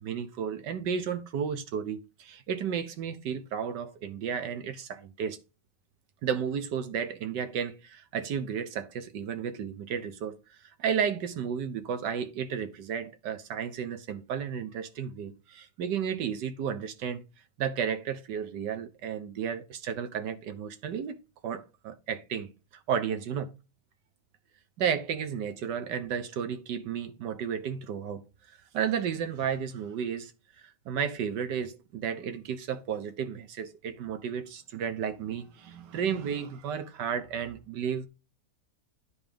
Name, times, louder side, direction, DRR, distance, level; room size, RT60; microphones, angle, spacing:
voice 1, 0.0-5.4 6.2-10.4 10.8-17.2 17.6-21.2 21.4-22.5 22.9-23.5 24.8-28.2 28.7-30.3 30.6-38.1, right 7 dB, 90° right, 1.6 m, -33 dB
10.0 x 4.3 x 5.1 m
omnidirectional pair, 1.8 m